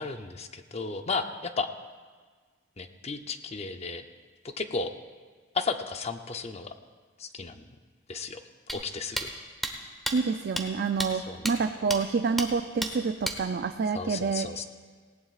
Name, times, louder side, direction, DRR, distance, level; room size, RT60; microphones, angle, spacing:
voice 1, 0.0-1.7 2.8-4.0 4.4-4.9 5.5-6.7 7.2-7.7 8.1-8.4 8.7-9.3 11.3-11.4 13.9-14.6, left 4 dB, 30° left, 8 dB, 0.6 m, -34 dB
sound 1, 8.7-8.8 9.2-9.3 9.6-9.7 10.1-10.2 10.6-10.7 11.0-11.1 11.5-11.6 11.9-12.0 12.4-12.5 12.8-12.9 13.2-13.4, right 1 dB, ahead, 0.9 m, -30 dB
voice 2, 10.1-14.5, right 5 dB, 50° right, 8 dB, 0.4 m, -28 dB
18.5 x 17.5 x 2.4 m, 1.5 s
head